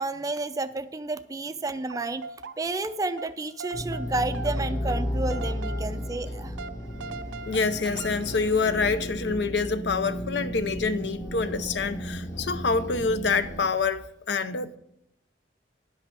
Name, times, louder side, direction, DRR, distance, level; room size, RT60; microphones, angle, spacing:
voice 1, 0.0-2.2 2.6-6.5, right 2 dB, 20° right, 0.4 m, -31 dB
sound 1, 1.7-2.9 3.2-9.3, right 4 dB, 85° right, 0.6 m, -41 dB
sound 2, 3.7-13.6, equal, 45° left, 1.6 m, -33 dB
voice 2, 7.4-14.8, left 4 dB, 65° left, 0.6 m, -26 dB
10.5 x 5.6 x 6.1 m
head